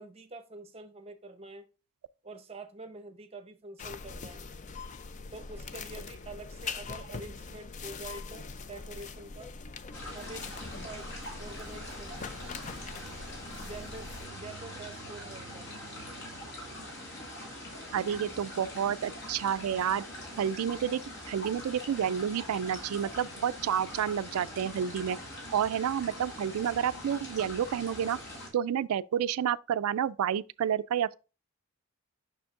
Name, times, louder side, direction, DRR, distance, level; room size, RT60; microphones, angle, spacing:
voice 1, 0.0-1.7 2.2-4.5 5.3-9.5 10.1-12.4 13.5-15.7, right 2 dB, 25° right, 0.7 m, -46 dB
sound 1, 3.8-14.3, left 4 dB, 35° left, 0.3 m, -42 dB
sound 2, 9.9-28.5, left 1 dB, 50° left, 2.0 m, -43 dB
voice 2, 17.9-20.0 20.4-21.0 21.3-25.2 25.5-28.2 28.5-31.1, right 9 dB, 80° right, 0.3 m, -30 dB
6.9 x 6.1 x 2.4 m
head